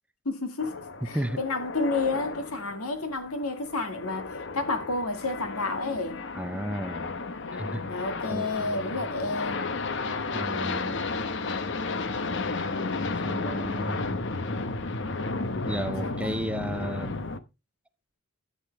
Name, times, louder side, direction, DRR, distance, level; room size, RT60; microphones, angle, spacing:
voice 1, 0.3-4.3 4.5-6.2 7.4-9.7 12.7-13.1 15.3-16.5, left 3 dB, 85° left, 2.1 m, -31 dB
sound 1, 0.6-17.4, left 3 dB, 55° left, 0.8 m, -33 dB
voice 2, 6.3-7.2 7.5-9.0 10.3-11.0 13.2-14.1 15.7-17.2, right 1 dB, 5° right, 0.5 m, -34 dB
13.0 x 7.7 x 3.4 m
head